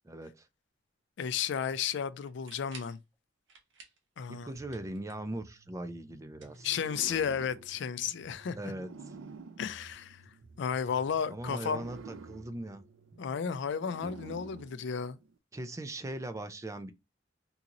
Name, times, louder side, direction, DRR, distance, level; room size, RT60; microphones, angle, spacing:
voice 1, 0.0-0.5 4.3-6.8 8.6-9.2 11.3-12.8 14.0-14.1 15.5-16.9, right 1 dB, 15° right, 0.4 m, -40 dB
voice 2, 1.2-3.0 4.2-4.5 6.6-8.6 9.6-10.2 10.6-11.8 13.2-15.2, left 7 dB, 65° left, 0.4 m, -33 dB
sound 1, 2.2-3.0 3.5-4.1 4.4-5.4 6.3-7.2, right 4 dB, 70° right, 1.0 m, -54 dB
sound 2, 4.5-14.6, right 2 dB, 40° right, 0.8 m, -56 dB
sound 3, 6.6-10.7 11.4-15.4, right 4 dB, 90° right, 0.4 m, -50 dB
3.8 x 2.9 x 2.5 m
head